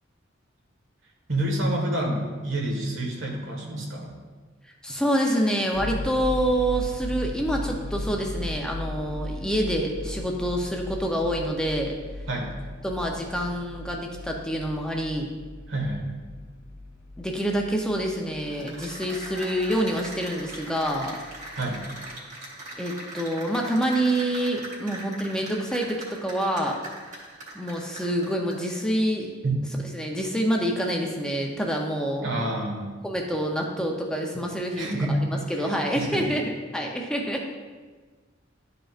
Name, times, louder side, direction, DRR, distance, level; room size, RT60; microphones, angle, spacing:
voice 1, 1.3-4.1 12.3-12.5 15.7-16.1 21.6-21.8 29.4-29.6 32.2-32.9 34.7-35.2 35.9-36.2, right 1 dB, 75° right, 0 dB, 1.5 m, -28 dB
voice 2, 4.8-12.0 12.8-15.3 17.2-21.2 22.8-26.8 27.5-29.3 29.9-32.4 33.0-37.5, equal, 5° left, 0 dB, 0.6 m, -27 dB
sound 1, 5.7-22.1, left 2 dB, 55° left, 1.3 m, -37 dB
Cheering / Applause, 18.4-28.8, right 1 dB, 40° right, 2.0 m, -40 dB
11.5 x 5.1 x 2.5 m, 1.4 s
head